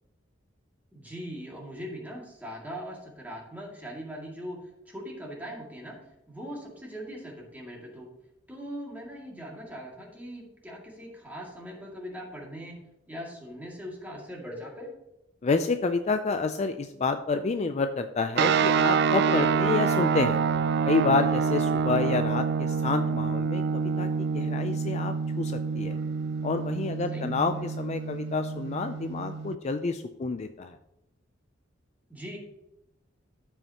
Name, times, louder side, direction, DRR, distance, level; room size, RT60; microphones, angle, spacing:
voice 1, 0.9-6.0 6.3-8.1 8.5-12.8 13.1-14.9 27.1-27.3 32.1-32.4, equal, 10° right, -3 dB, 2.2 m, -40 dB
voice 2, 15.4-20.4 20.9-26.0 26.4-30.8, left 4 dB, 35° left, 8 dB, 0.4 m, -29 dB
sound 1, 18.4-29.6, right 5 dB, 60° right, 0.3 m, -27 dB
13.5 x 5.6 x 2.9 m, 0.88 s
head